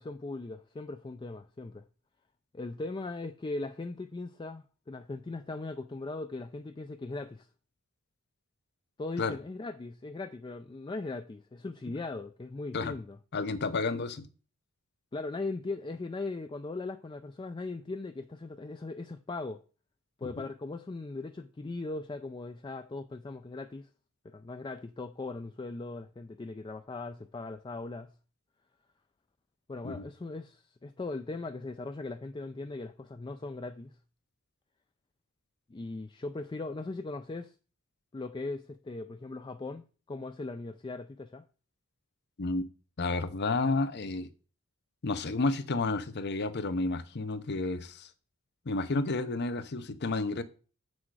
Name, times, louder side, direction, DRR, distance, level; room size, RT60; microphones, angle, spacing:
voice 1, 0.0-1.8 2.5-7.5 9.0-13.2 15.1-19.6 20.2-23.9 24.2-28.1 29.7-33.9 35.7-37.5 38.1-39.8 40.1-41.4, left 3 dB, 20° left, 0.3 m, -39 dB
voice 2, 13.3-14.3 20.2-20.4 29.8-30.0 42.4-42.6 43.0-44.3 45.0-48.1 48.7-50.4, left 3 dB, 50° left, 0.7 m, -31 dB
7.4 x 6.2 x 4.7 m
head